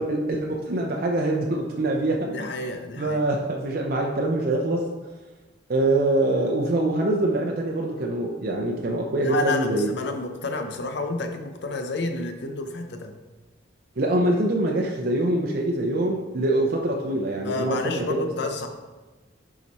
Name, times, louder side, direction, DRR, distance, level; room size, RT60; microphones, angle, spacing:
voice 1, 0.0-2.3 3.0-4.9 5.7-9.9 14.0-18.3, right 2 dB, 55° right, 0 dB, 0.6 m, -24 dB
voice 2, 2.3-3.2 9.2-13.1 17.4-18.7, left 3 dB, 65° left, 6 dB, 0.7 m, -30 dB
7.0 x 4.9 x 4.2 m, 1.2 s
head